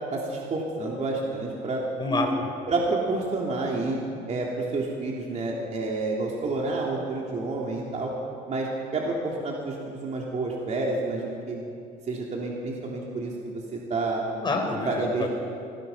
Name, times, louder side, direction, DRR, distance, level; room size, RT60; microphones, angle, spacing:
voice 1, 0.1-1.8 2.7-4.0 4.3-8.1 8.5-11.6 12.1-14.2 14.8-15.3, right 3 dB, 45° right, -2 dB, 3.2 m, -29 dB
voice 2, 2.0-2.5 14.4-15.3, left 2 dB, 25° left, 2 dB, 4.5 m, -27 dB
25.5 x 20.0 x 5.6 m, 2.5 s
cardioid pair, 110°, 17 cm